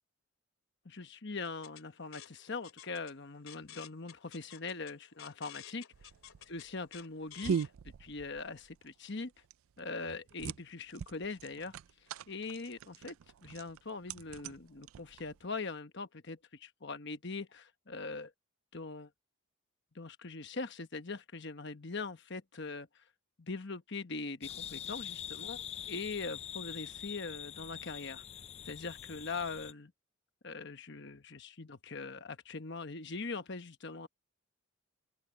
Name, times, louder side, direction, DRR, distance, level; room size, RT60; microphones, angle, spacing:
voice 1, 0.8-5.8 6.5-7.7 8.0-9.3 9.8-11.7 12.3-13.2 13.4-18.3 18.7-19.1 19.9-22.9 23.4-28.2 28.7-29.9 30.4-34.1, left 3 dB, 55° left, 1.2 m, -42 dB
sound 1, 1.4-7.7, left 10 dB, 70° left, 2.7 m, -53 dB
sound 2, 5.9-15.5, right 7 dB, 75° right, 0.4 m, -42 dB
sound 3, 24.4-29.7, left 9 dB, 30° left, 0.3 m, -44 dB
open air
head